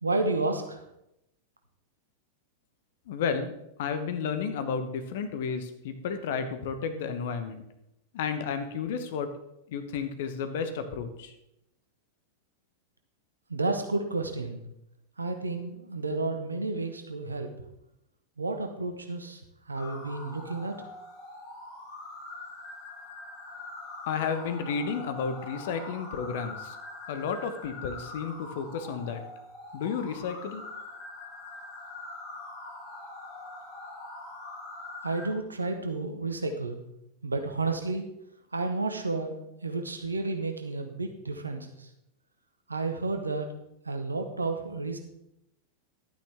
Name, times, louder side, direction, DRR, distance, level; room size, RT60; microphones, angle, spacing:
voice 1, 0.0-0.8 13.5-14.6 15.2-17.5 18.4-19.4 19.7-20.7 35.0-36.8 37.2-38.0 38.5-39.4 39.6-41.9 42.7-43.5 43.8-45.0, right 3 dB, 80° right, 5 dB, 1.2 m, -31 dB
voice 2, 3.1-7.6 8.1-9.3 9.7-11.3 24.0-26.8 27.1-29.2 29.7-30.6, left 6 dB, 55° left, 9 dB, 1.1 m, -32 dB
sound 1, 19.8-35.3, left 2 dB, 25° left, 3.6 m, -43 dB
11.5 x 9.1 x 3.5 m, 0.85 s
figure-of-eight pair, 90°, 0 cm